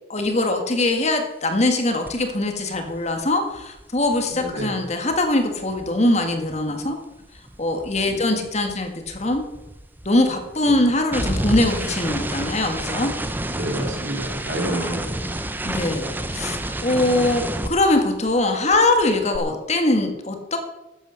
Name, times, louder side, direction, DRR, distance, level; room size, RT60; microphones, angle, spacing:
voice 1, 0.1-7.0 7.6-9.4 10.0-13.1 14.7-14.9 15.6-20.6, left 2 dB, 35° left, 5 dB, 1.7 m, -22 dB
sound 1, 2.1-2.3 2.5-6.9 7.2-18.5 18.7-19.4, right 1 dB, 10° right, 0.8 m, -30 dB
voice 2, 4.4-4.8 8.1-8.3 10.8-10.9 13.4-15.4, right 1 dB, 60° right, 2 dB, 3.4 m, -29 dB
13.0 x 8.9 x 6.3 m, 0.99 s
head